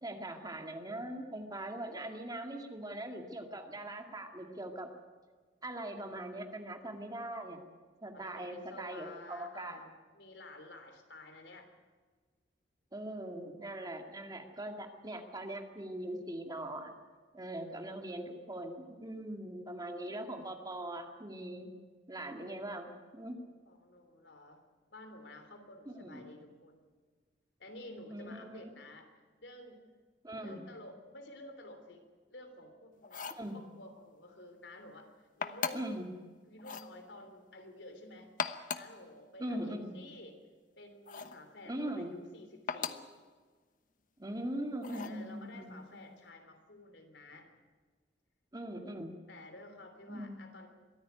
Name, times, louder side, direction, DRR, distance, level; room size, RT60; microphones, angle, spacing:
voice 1, 0.0-4.9 5.6-7.6 8.0-9.8 12.9-16.9 17.3-21.7 22.1-23.4 25.9-26.3 28.1-28.7 30.2-30.6 33.4-33.6 35.7-36.1 39.4-40.0 41.7-42.1 44.2-46.1 48.5-49.2 50.1-50.5, right 1 dB, 20° right, 4 dB, 2.2 m, -41 dB
voice 2, 8.1-11.7 23.6-24.6 24.9-26.9 27.6-29.1 29.4-29.8 30.4-33.2 33.5-35.8 36.4-38.4 38.7-40.4 40.8-43.0 44.9-47.5 49.3-50.7, left 1 dB, 80° left, 6 dB, 3.3 m, -52 dB
sound 1, 33.0-33.5 35.4-36.0 36.6-36.9 38.2-39.0 41.1-41.4 42.7-43.1 44.8-45.2, left 5 dB, 50° left, 1.0 m, -38 dB
23.0 x 14.5 x 9.4 m, 1.5 s
head